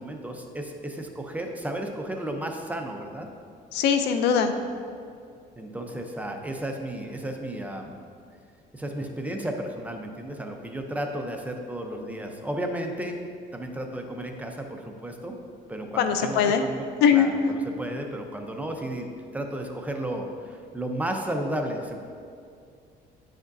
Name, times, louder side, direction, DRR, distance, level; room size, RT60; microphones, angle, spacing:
voice 1, 0.0-3.3 5.6-8.0 8.7-13.2 13.5-15.4 15.7-16.8 17.1-19.1 19.3-22.0, right 1 dB, 10° right, 3 dB, 0.6 m, -33 dB
voice 2, 3.7-4.5 16.0-16.6 17.0-17.3, left 7 dB, 85° left, 7 dB, 0.5 m, -21 dB
9.5 x 5.0 x 2.7 m, 2.3 s
cardioid pair, 110°, 17 cm